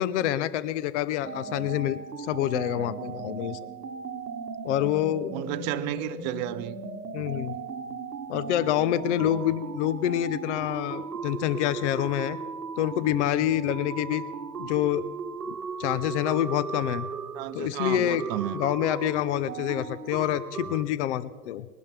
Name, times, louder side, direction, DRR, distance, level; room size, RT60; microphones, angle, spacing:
voice 1, 0.0-3.6 4.6-5.3 7.1-7.6 8.3-12.4 12.8-14.2 14.6-15.1 15.5-17.1 17.5-18.2 18.5-21.7, left 12 dB, 50° left, 0.7 m, -27 dB
sound 1, 1.2-20.8, right 5 dB, 90° right, 1.1 m, -37 dB
voice 2, 5.3-6.8 17.3-18.6, right 14 dB, 30° right, 0.6 m, -32 dB
21.0 x 11.5 x 3.4 m
hypercardioid pair, 105°, 46 cm